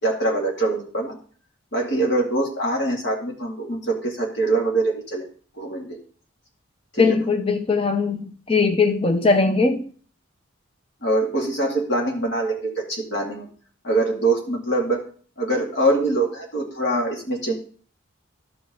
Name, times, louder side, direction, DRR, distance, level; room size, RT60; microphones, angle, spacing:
voice 1, 0.0-1.2 1.7-5.3 5.6-6.0 6.9-7.2 11.0-13.5 13.8-15.0 15.4-17.5, right 2 dB, 55° left, 2.3 m, -23 dB
voice 2, 7.0-9.8, left 4 dB, 25° left, 0.6 m, -20 dB
12.5 x 5.4 x 3.7 m
head